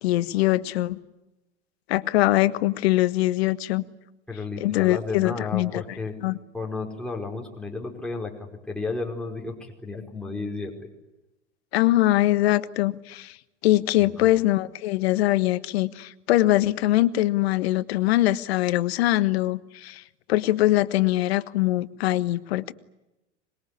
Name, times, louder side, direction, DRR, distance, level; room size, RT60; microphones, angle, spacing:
voice 1, 0.0-1.0 1.9-3.8 4.6-5.8 6.2-6.4 11.7-13.4 13.6-20.0 20.3-22.7, left 16 dB, 60° left, 1.5 m, -22 dB
voice 2, 4.3-6.1 6.5-10.9 14.0-14.3, left 3 dB, ahead, 5.0 m, -33 dB
26.0 x 22.0 x 9.9 m
hypercardioid pair, 95°, 35 cm